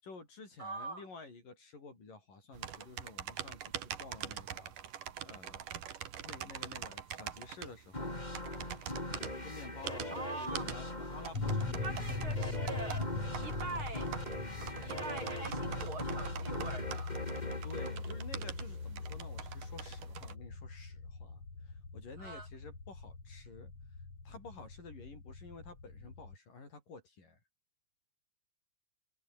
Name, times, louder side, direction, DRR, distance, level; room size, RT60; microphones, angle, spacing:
voice 1, 0.0-4.7 5.2-5.7 6.2-8.2 9.0-12.6 17.6-23.7 24.3-27.4, left 4 dB, 75° left, 9.1 m, -51 dB
voice 2, 0.6-1.0 10.1-10.6 11.8-14.1 14.7-17.2 22.2-22.5, right 3 dB, 40° right, 3.2 m, -43 dB
sound 1, 2.5-20.3, right 10 dB, 75° right, 3.5 m, -45 dB
sound 2, 7.9-19.1, left 1 dB, 10° left, 5.4 m, -41 dB
sound 3, 11.3-26.4, left 3 dB, 45° left, 6.6 m, -41 dB
omnidirectional pair, 3.8 m